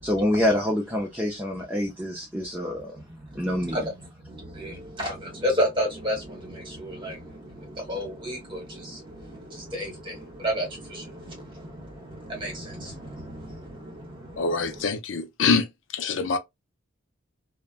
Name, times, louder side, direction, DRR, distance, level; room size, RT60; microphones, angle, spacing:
voice 1, 0.0-2.9 3.3-3.8, left 1 dB, 10° right, 0.6 m, -26 dB
voice 2, 3.3-3.9 4.2-14.8, equal, 25° right, 1.5 m, -32 dB
voice 3, 14.4-15.7 15.9-16.4, left 4 dB, 60° left, 0.5 m, -24 dB
3.2 x 2.1 x 2.4 m
head